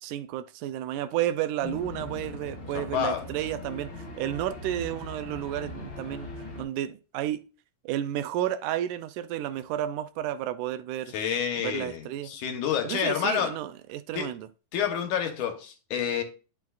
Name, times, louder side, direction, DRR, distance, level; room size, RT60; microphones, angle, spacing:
voice 1, 0.0-6.3 6.6-7.4 7.9-11.1 11.6-12.3 12.8-14.5, right 12 dB, 85° right, 2.1 m, -32 dB
sound 1, 1.6-6.6, left 2 dB, 40° left, 3.1 m, -40 dB
voice 2, 2.7-3.2 11.1-13.6 14.1-14.3 14.7-16.2, left 8 dB, 75° left, 2.6 m, -29 dB
10.5 x 6.1 x 2.4 m
omnidirectional pair, 3.6 m